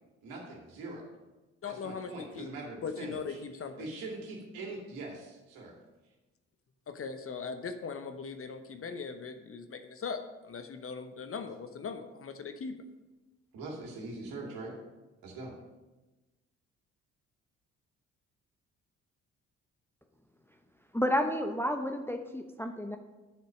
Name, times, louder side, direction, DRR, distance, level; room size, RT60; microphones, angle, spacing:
voice 1, 0.2-1.0 1.6-3.4 3.8-5.7 13.5-14.7 15.2-15.5, right 2 dB, 65° right, -1 dB, 2.5 m, -42 dB
voice 2, 1.6-2.5 2.8-3.9 6.9-12.8, left 5 dB, 35° left, 8 dB, 0.9 m, -40 dB
voice 3, 20.9-23.0, equal, 5° left, 5 dB, 0.8 m, -31 dB
9.0 x 7.3 x 5.1 m, 1.1 s
figure-of-eight pair, 45°, 37 cm